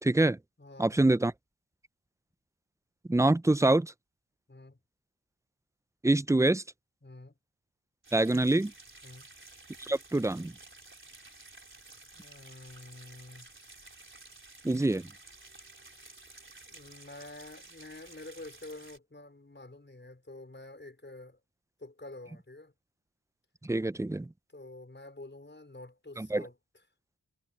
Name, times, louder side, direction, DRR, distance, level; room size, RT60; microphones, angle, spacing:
voice 1, 0.0-0.4 0.8-1.3 3.1-3.9 6.0-6.6 8.1-8.7 9.8-10.5 14.6-15.1 23.6-24.3 26.2-26.4, right 2 dB, 10° right, 0.5 m, -25 dB
voice 2, 0.6-1.0 4.5-4.8 7.0-7.3 9.0-9.3 12.1-13.5 16.7-21.4 21.8-22.7 24.5-26.5, left 2 dB, 30° left, 4.9 m, -48 dB
sound 1, 8.0-19.0, right 2 dB, 30° right, 4.2 m, -53 dB
wide cardioid pair, 70°, 38 cm